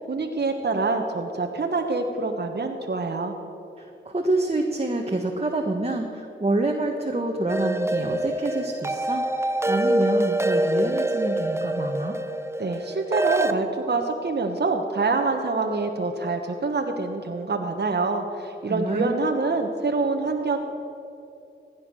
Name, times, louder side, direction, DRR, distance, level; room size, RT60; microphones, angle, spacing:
voice 1, 0.0-3.3 12.6-20.6, right 3 dB, 55° right, 3 dB, 1.2 m, -26 dB
voice 2, 3.8-9.2 9.7-12.2 18.7-19.1, right 2 dB, 30° right, 2 dB, 1.3 m, -27 dB
sound 1, 7.5-13.5, right 1 dB, 15° right, 0.8 m, -25 dB
16.0 x 9.4 x 6.2 m, 2.8 s
cardioid pair, 50°, 21 cm